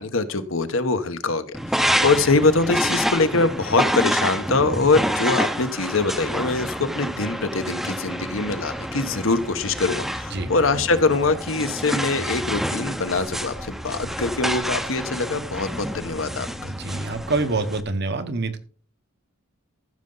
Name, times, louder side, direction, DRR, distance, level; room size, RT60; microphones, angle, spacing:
voice 1, 0.0-16.7, left 3 dB, 70° left, 10 dB, 1.1 m, -23 dB
sound 1, 1.5-17.8, equal, ahead, 0.7 m, -28 dB
voice 2, 16.6-18.6, right 3 dB, 55° right, 9 dB, 1.1 m, -26 dB
14.5 x 6.7 x 3.9 m, 0.42 s
head